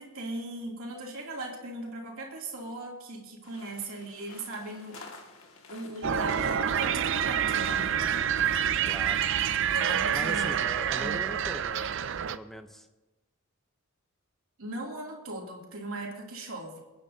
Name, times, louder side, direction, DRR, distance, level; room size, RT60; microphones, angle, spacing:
voice 1, 0.0-5.0 5.7-8.3 9.7-10.5 11.0-11.3 14.6-16.8, right 2 dB, 75° right, -1 dB, 2.8 m, -38 dB
sound 1, 3.4-9.7, left 3 dB, 70° left, 2.0 m, -49 dB
sound 2, 6.0-12.4, right 8 dB, 60° right, 0.5 m, -27 dB
voice 2, 8.8-9.3 10.1-11.9 12.3-12.9, equal, ahead, 7 dB, 0.7 m, -40 dB
28.0 x 10.0 x 2.8 m, 1.1 s
head